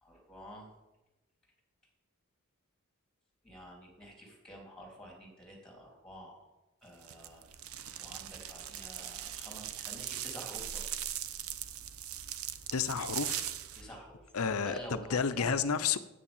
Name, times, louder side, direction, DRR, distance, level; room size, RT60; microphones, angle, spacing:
voice 1, 0.0-0.7 3.4-6.5 6.8-7.5 8.0-10.8 13.7-14.3 14.6-15.6, equal, 5° left, -1 dB, 3.4 m, -48 dB
sound 1, 7.0-13.8, right 11 dB, 85° right, 0.8 m, -40 dB
voice 2, 12.7-13.5 14.3-16.0, left 6 dB, 90° left, 13 dB, 0.7 m, -31 dB
9.9 x 8.4 x 7.2 m, 1.0 s
head